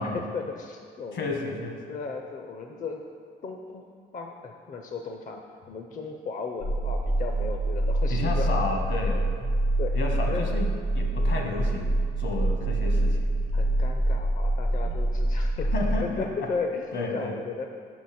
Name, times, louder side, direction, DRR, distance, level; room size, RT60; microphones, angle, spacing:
voice 1, 0.0-1.3 1.9-3.0 3.4-3.9 4.1-5.4 5.7-8.6 9.8-10.0 10.3-10.4 12.6-12.8 13.5-15.7 16.0-16.8 17.1-17.7, left 4 dB, 40° left, 3 dB, 0.5 m, -35 dB
voice 2, 1.1-1.8 8.1-9.6 9.9-13.4 15.7-16.5 16.9-17.3, left 3 dB, 70° left, 2 dB, 1.2 m, -32 dB
sound 1, 6.6-16.0, right 1 dB, 90° left, 1.5 m, -26 dB
6.2 x 5.9 x 4.2 m, 2.1 s
cardioid pair, 90°, 20 cm